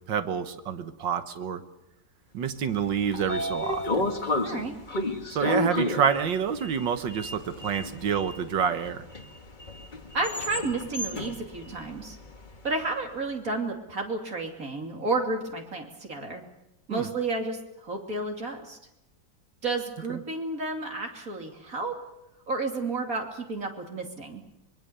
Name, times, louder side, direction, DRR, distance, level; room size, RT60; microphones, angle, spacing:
voice 1, 0.1-1.6 2.3-4.1 5.3-9.0 16.9-17.1, right 7 dB, 75° right, 10 dB, 1.9 m, -28 dB
Sliding door, 2.7-12.9, left 2 dB, 25° left, 1.6 m, -32 dB
voice 2, 4.4-4.7 10.1-12.2 12.6-16.4 16.9-18.8 19.6-21.9 22.5-24.4, right 3 dB, 45° right, 2 dB, 3.2 m, -31 dB
25.0 x 22.0 x 6.8 m, 0.90 s
omnidirectional pair, 2.0 m